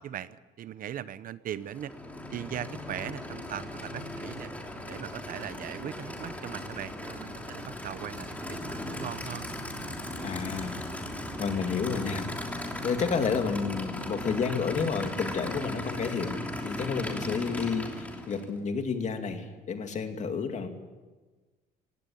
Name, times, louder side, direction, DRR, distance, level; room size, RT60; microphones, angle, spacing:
voice 1, 0.0-1.9 2.3-4.5 4.8-9.4, right 10 dB, 55° right, 16 dB, 0.8 m, -39 dB
Aircraft / Idling, 1.6-18.6, left 1 dB, 10° left, 3.1 m, -37 dB
voice 2, 10.2-10.9 11.4-12.3 12.8-20.7, left 5 dB, 45° left, 6 dB, 2.4 m, -31 dB
17.5 x 17.5 x 8.5 m, 1.3 s
cardioid pair, 110°, 17 cm